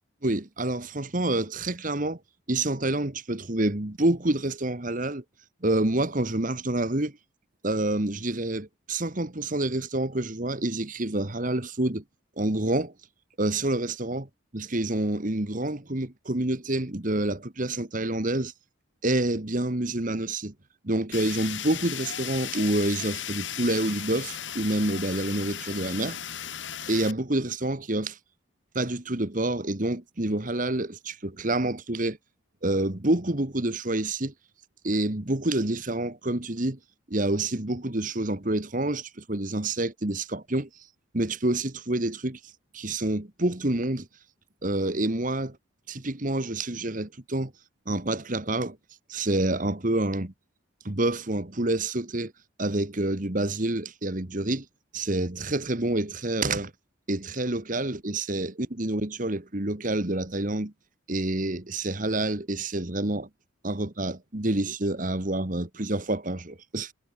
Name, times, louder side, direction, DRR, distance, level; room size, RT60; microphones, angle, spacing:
voice 1, 0.2-2.2 2.5-5.2 5.6-7.1 7.6-12.0 12.4-12.9 13.4-14.2 14.5-18.5 19.0-20.5 20.8-26.2 26.9-28.2 28.7-32.2 32.6-34.3 34.8-36.8 37.1-40.7 41.1-42.4 42.7-44.1 44.6-45.6 45.9-47.5 47.9-48.8 49.1-50.3 50.8-52.3 52.6-54.6 54.9-56.7 57.1-60.7 61.1-63.3 63.6-66.9, right 1 dB, 40° right, 1.6 m, -28 dB
Fire, 21.1-27.1, left 10 dB, 60° left, 2.6 m, -36 dB
head